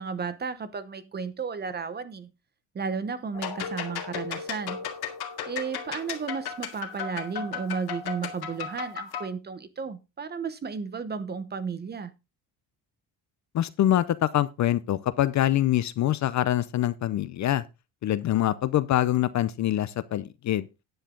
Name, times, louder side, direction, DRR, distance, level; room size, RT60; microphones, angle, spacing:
voice 1, 0.0-2.3 2.7-4.8 5.5-12.1, right 5 dB, 25° right, 0.9 m, -33 dB
sound 1, 3.3-9.3, left 7 dB, 60° left, 2.3 m, -35 dB
voice 2, 13.5-17.6 18.0-20.7, left 13 dB, 40° left, 0.6 m, -25 dB
10.5 x 9.1 x 3.8 m
cardioid pair, 160°, 42 cm